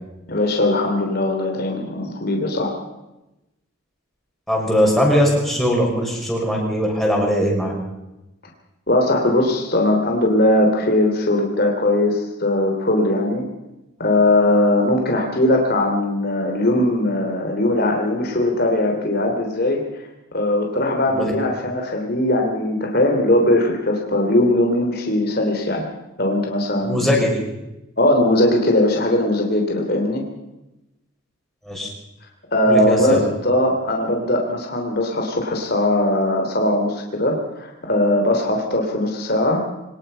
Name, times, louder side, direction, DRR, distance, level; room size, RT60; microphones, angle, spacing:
voice 1, 0.3-2.7 8.9-13.5 14.0-25.9 26.2-27.1 28.0-30.3 32.5-39.7, left 1 dB, 50° left, 1 dB, 3.2 m, -20 dB
voice 2, 4.5-7.7 21.1-21.3 26.8-27.4 31.6-31.9 32.6-33.2, equal, ahead, -3 dB, 6.0 m, -20 dB
23.5 x 19.0 x 5.7 m, 0.95 s
head